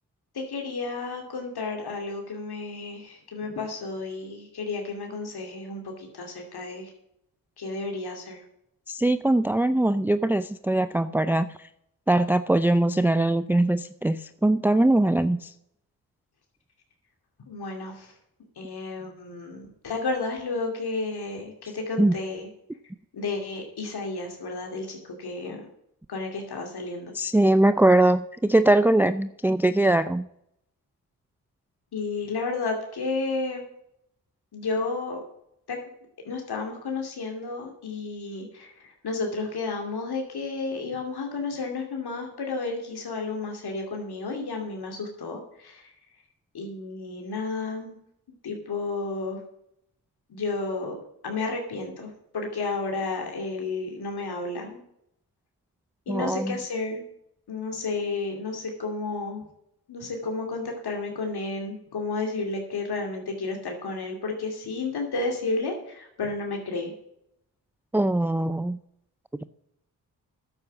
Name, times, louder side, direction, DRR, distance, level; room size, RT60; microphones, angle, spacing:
voice 1, 0.3-6.9 7.6-8.4 17.5-18.1 18.6-22.5 23.1-25.6 26.1-27.1 31.9-33.6 34.5-35.2 35.7-35.8 36.2-45.9 46.5-48.0 48.4-49.4 50.3-54.8 56.1-57.0 57.5-59.4 59.9-66.9, left 3 dB, 70° left, 2 dB, 2.7 m, -32 dB
voice 2, 8.9-11.7 12.1-15.5 22.0-22.1 27.1-30.3 56.1-56.6 67.9-68.8, right 1 dB, 5° right, 13 dB, 0.5 m, -21 dB
9.6 x 7.9 x 7.1 m, 0.76 s
supercardioid pair, 45°, 41 cm